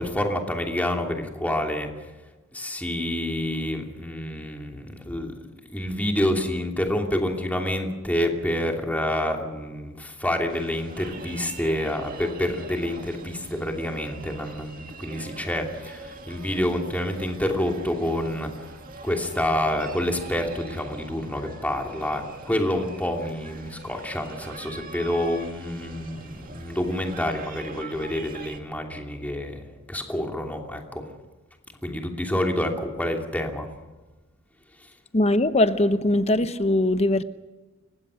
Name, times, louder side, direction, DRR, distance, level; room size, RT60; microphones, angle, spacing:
voice 1, 0.0-2.1 2.5-5.4 5.7-18.7 19.0-31.0 31.8-33.7 34.8-34.9, left 1 dB, 10° left, 2.8 m, -28 dB
sound 1, 10.5-28.6, right 3 dB, 45° right, 2.1 m, -43 dB
voice 2, 35.1-37.2, left 1 dB, 35° left, 0.9 m, -21 dB
30.0 x 16.0 x 6.4 m
head